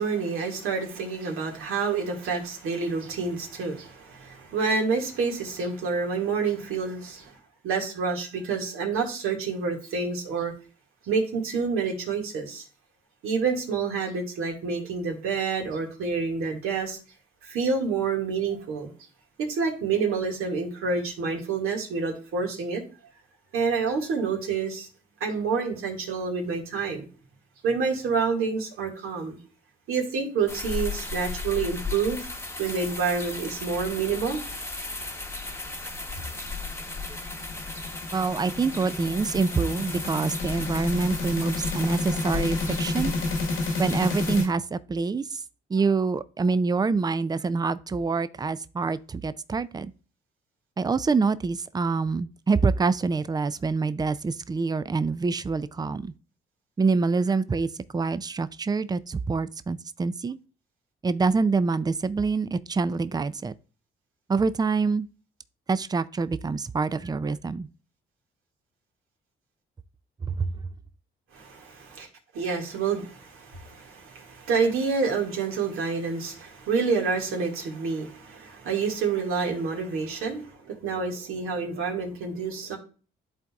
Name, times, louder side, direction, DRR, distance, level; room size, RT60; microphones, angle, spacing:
voice 1, 0.0-7.4 7.6-10.5 11.1-12.6 13.2-17.0 17.4-18.9 19.4-22.8 23.5-24.9 25.2-27.1 27.6-29.4 29.9-32.3 32.6-34.4 71.3-72.1 72.3-82.8, right 5 dB, 80° right, 2.0 m, -28 dB
sound 1, 30.5-44.4, left 3 dB, 10° left, 1.0 m, -35 dB
sound 2, 36.4-44.5, left 3 dB, 80° left, 1.5 m, -31 dB
voice 2, 38.1-43.1 43.8-45.4 45.7-49.9 50.8-56.1 56.8-60.4 61.0-63.5 64.3-65.1 65.7-67.7 70.2-70.5, right 4 dB, 20° right, 0.4 m, -26 dB
11.5 x 3.9 x 2.4 m
supercardioid pair, 65°, 21 cm